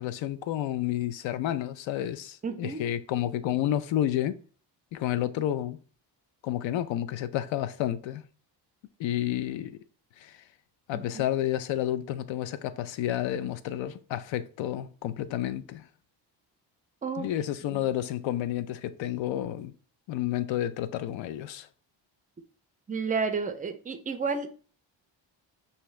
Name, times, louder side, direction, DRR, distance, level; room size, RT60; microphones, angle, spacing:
voice 1, 0.0-4.4 4.9-5.8 6.4-8.2 9.0-9.8 10.2-10.4 10.9-15.8 17.2-19.7 20.1-21.7, left 12 dB, 85° left, 0.5 m, -30 dB
voice 2, 2.4-2.8 10.9-11.3 17.0-17.3 17.7-17.8 22.9-24.5, right 5 dB, 20° right, 0.3 m, -31 dB
5.7 x 2.7 x 3.1 m
cardioid pair, 155°, 45 cm